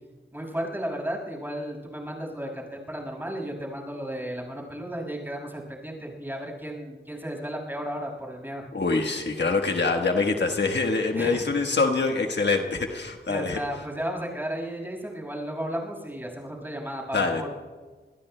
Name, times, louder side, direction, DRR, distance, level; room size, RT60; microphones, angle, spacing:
voice 1, 0.3-8.6 11.1-11.5 13.3-17.5, equal, 10° right, -1 dB, 5.9 m, -34 dB
voice 2, 8.7-13.6 17.1-17.5, left 3 dB, 65° left, 3 dB, 1.3 m, -25 dB
26.5 x 21.0 x 2.2 m, 1.4 s
wide cardioid pair, 65°, 20 cm